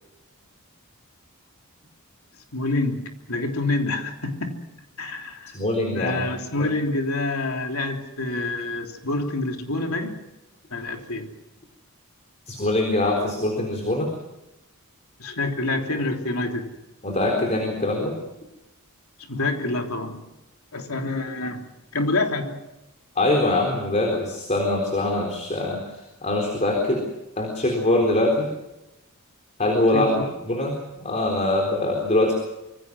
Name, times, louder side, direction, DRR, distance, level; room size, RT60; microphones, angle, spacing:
voice 1, 2.5-4.6 5.0-5.6 5.9-10.1 10.7-11.3 15.2-16.7 19.3-20.2 20.7-21.7 21.9-22.6 29.9-30.3, left 2 dB, 80° left, 3 dB, 3.3 m, -27 dB
voice 2, 5.5-6.3 6.6-6.7 12.5-14.1 17.0-18.2 23.2-27.0 27.4-28.5 29.6-30.1 30.4-32.3, left 2 dB, 35° left, 2 dB, 3.9 m, -23 dB
26.0 x 23.5 x 6.2 m, 0.95 s
head